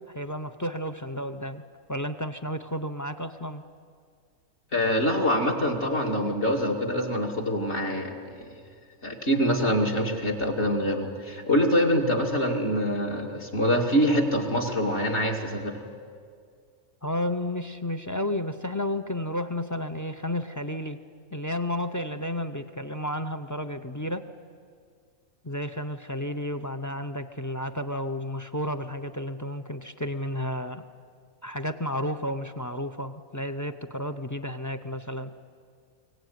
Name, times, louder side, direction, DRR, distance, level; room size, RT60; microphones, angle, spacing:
voice 1, 0.1-1.6 1.9-3.6 17.0-21.0 21.3-24.3 25.4-30.8 31.4-35.3, left 1 dB, 30° left, 10 dB, 0.3 m, -32 dB
voice 2, 4.7-8.5 9.0-15.9, equal, 50° left, 0 dB, 2.5 m, -25 dB
23.5 x 17.5 x 9.3 m, 2.1 s
omnidirectional pair, 1.5 m